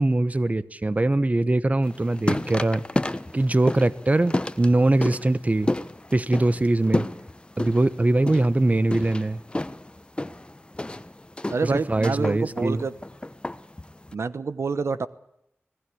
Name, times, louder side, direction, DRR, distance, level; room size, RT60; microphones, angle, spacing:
voice 1, 0.0-2.8 3.3-5.7 6.1-7.1 7.6-9.4 11.6-12.9, right 2 dB, 35° right, 15 dB, 1.1 m, -22 dB
sound 1, 1.8-14.1, left 1 dB, 20° left, 1.0 m, -31 dB
voice 2, 11.5-12.9 14.1-15.1, right 4 dB, 80° right, 14 dB, 1.1 m, -27 dB
25.5 x 18.0 x 8.6 m, 0.80 s
wide cardioid pair, 55°, 5 cm